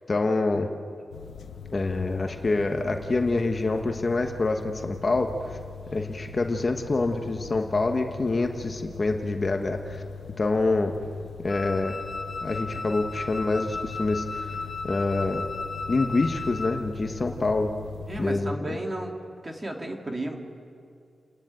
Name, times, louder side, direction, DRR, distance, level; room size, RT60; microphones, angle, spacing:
voice 1, 0.1-0.7 1.7-5.6 5.9-10.0 10.4-10.9 11.4-12.0 12.4-14.5 14.8-15.5 15.9-17.7 18.2-18.5, left 3 dB, 35° left, 4 dB, 1.2 m, -26 dB
sound 1, 1.1-18.3, left 5 dB, 90° left, 0.8 m, -41 dB
Wind instrument woodwind instrument, 11.5-16.8, left 3 dB, 15° left, 1.9 m, -35 dB
voice 2, 18.1-19.1 19.4-20.4, right 1 dB, 20° right, 2 dB, 2.3 m, -33 dB
30.0 x 11.5 x 9.1 m, 2.3 s
wide cardioid pair, 135°, 0 cm